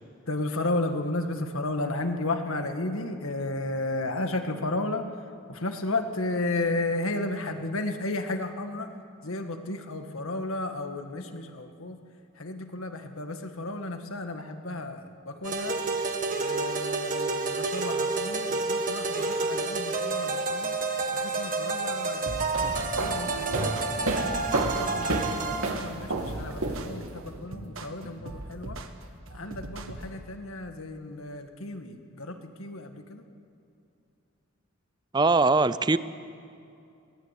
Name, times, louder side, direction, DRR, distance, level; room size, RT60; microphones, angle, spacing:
voice 1, 0.3-5.0 5.5-8.9 9.2-12.0 12.4-15.8 16.4-20.7 21.1-23.7 23.9-24.2 24.6-28.8 29.3-33.2, left 2 dB, 75° left, 1.8 m, -33 dB
sound 1, 15.4-25.7, right 3 dB, 40° right, 1.8 m, -29 dB
sound 2, 22.3-30.2, right 2 dB, 70° right, 1.5 m, -40 dB
sound 3, 22.4-27.2, right 2 dB, 85° right, 2.3 m, -30 dB
voice 2, 35.1-36.0, right 3 dB, 20° right, 0.5 m, -21 dB
22.5 x 18.5 x 8.3 m
head